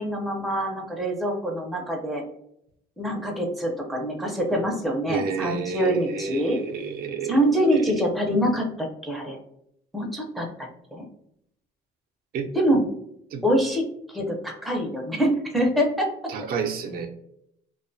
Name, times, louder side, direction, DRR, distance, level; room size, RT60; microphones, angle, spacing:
voice 1, 0.0-2.2 3.0-6.6 7.3-9.4 9.9-11.0 12.5-12.9 13.4-13.8 14.1-16.1, equal, ahead, 0 dB, 0.5 m, -25 dB
voice 2, 5.1-7.4 7.7-7.8 12.3-12.5 13.3-13.4 16.3-17.1, right 5 dB, 60° right, 3 dB, 0.4 m, -30 dB
2.4 x 2.2 x 2.6 m, 0.75 s
cardioid pair, 110°, 17 cm